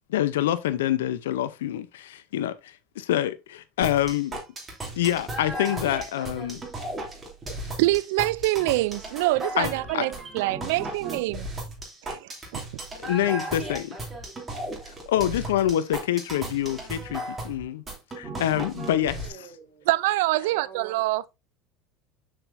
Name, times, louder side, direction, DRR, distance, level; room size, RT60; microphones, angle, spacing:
voice 1, 0.1-2.0 2.3-4.4 4.9-6.6 9.6-9.7 9.9-10.1 13.0-14.0 15.1-17.8 18.2-19.2, left 12 dB, 85° left, 0.7 m, -26 dB
sound 1, 3.8-19.3, right 1 dB, 20° right, 3.1 m, -36 dB
voice 2, 7.8-11.5 12.0-12.6 19.9-21.2, right 18 dB, 75° right, 0.4 m, -25 dB
voice 3, 19.1-19.9 20.4-21.3, right 7 dB, 35° right, 3.1 m, -47 dB
6.7 x 5.9 x 2.7 m
hypercardioid pair, 90°, 0 cm